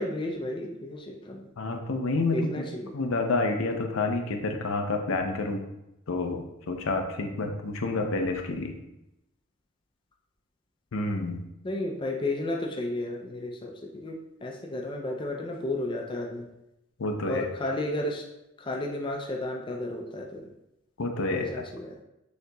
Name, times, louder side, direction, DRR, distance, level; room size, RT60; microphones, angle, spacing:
voice 1, 0.0-1.5 2.3-2.9 11.6-16.5 17.3-18.2 18.6-20.5 21.3-21.9, left 1 dB, 25° left, 0 dB, 0.4 m, -33 dB
voice 2, 1.6-2.6 2.9-5.6 6.1-8.8 10.9-11.4 17.0-17.4 21.0-21.6, left 3 dB, 80° left, 5 dB, 0.5 m, -29 dB
6.4 x 2.8 x 2.3 m, 0.88 s
head